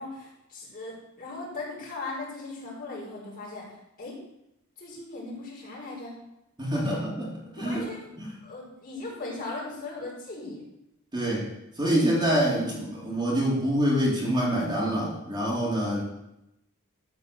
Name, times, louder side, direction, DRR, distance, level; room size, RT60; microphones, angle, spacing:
voice 1, 0.0-4.2 4.8-6.1 6.8-7.0 7.5-8.1 8.4-10.6, left 3 dB, 40° left, -5 dB, 4.9 m, -38 dB
voice 2, 6.6-7.3 7.5-7.9 8.2-8.3 11.1-11.5 11.8-16.0, equal, 20° right, -5 dB, 3.0 m, -26 dB
13.0 x 5.5 x 6.8 m, 0.86 s
head